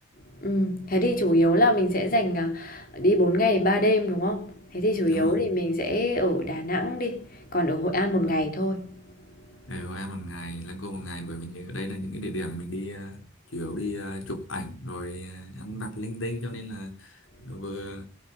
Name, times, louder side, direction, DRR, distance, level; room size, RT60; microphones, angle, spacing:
voice 1, 0.4-9.0, left 1 dB, 45° left, 3.4 m, -24 dB
voice 2, 5.1-5.5 8.2-8.4 9.7-13.2 13.5-17.2 17.5-18.0, left 1 dB, 80° left, 3.4 m, -35 dB
18.5 x 10.0 x 5.5 m
head